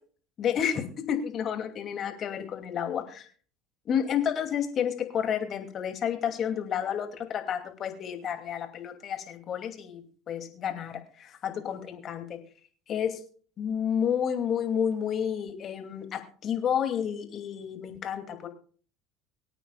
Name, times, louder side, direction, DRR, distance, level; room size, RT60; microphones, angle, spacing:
voice 1, 0.4-3.3 3.9-12.4 12.9-13.2 13.6-18.5, left 8 dB, 45° left, 6 dB, 2.6 m, -30 dB
24.0 x 9.0 x 2.3 m, 0.42 s
hypercardioid pair, 70°, 0 cm